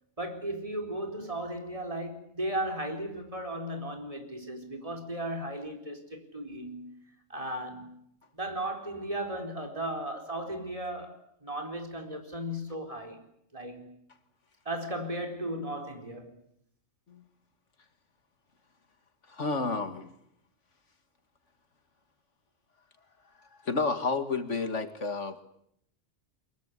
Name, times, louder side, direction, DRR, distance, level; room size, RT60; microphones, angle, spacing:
voice 1, 0.2-7.0 7.3-8.0 8.3-13.2 13.5-13.9 14.6-16.4, right 1 dB, 30° right, 4.4 m, -36 dB
voice 2, 19.3-20.1 23.6-25.4, left 4 dB, 80° left, 2.4 m, -30 dB
24.0 x 22.0 x 9.7 m
omnidirectional pair, 1.2 m